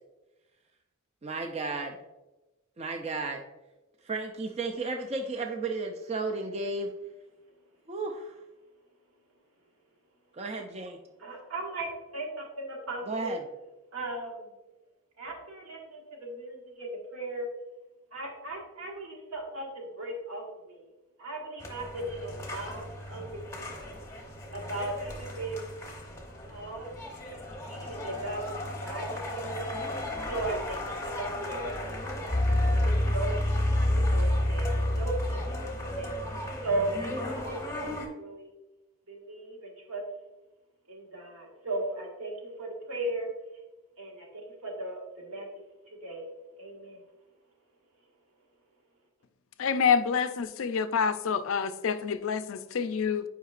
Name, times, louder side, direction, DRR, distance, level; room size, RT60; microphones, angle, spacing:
voice 1, 1.2-2.0 2.8-3.4 4.0-6.9 7.9-8.3 10.3-11.0 13.1-13.4, right 3 dB, 30° right, 3 dB, 0.4 m, -33 dB
voice 2, 11.2-13.3 13.9-14.5 15.2-17.5 18.1-20.8 21.2-23.7 24.5-25.7 26.5-29.8 30.3-32.4 32.6-33.3 33.7-36.1 36.6-38.5 39.1-40.0 40.9-43.3 44.0-45.5 45.9-46.2 46.6-47.0, right 2 dB, 75° right, 0 dB, 1.5 m, -37 dB
sound 1, 21.6-38.1, left 1 dB, 15° left, 0.8 m, -31 dB
voice 3, 49.6-53.2, left 6 dB, 65° left, 12 dB, 0.4 m, -27 dB
8.3 x 4.9 x 2.4 m, 1.1 s
head